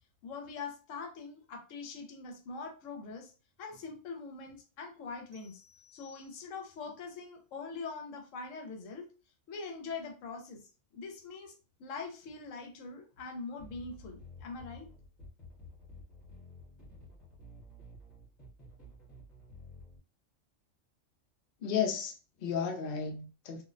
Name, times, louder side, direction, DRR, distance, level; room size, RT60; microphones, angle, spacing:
voice 1, 0.2-3.3 3.6-5.6 5.9-9.1 9.5-10.6 10.9-14.9, left 4 dB, 80° left, 0.9 m, -43 dB
sound 1, 5.3-6.8, left 7 dB, 35° right, 0.5 m, -62 dB
sound 2, 13.6-20.0, left 1 dB, 40° left, 1.0 m, -52 dB
voice 2, 21.6-23.6, left 7 dB, 60° left, 0.6 m, -33 dB
2.4 x 2.0 x 2.5 m
omnidirectional pair, 1.3 m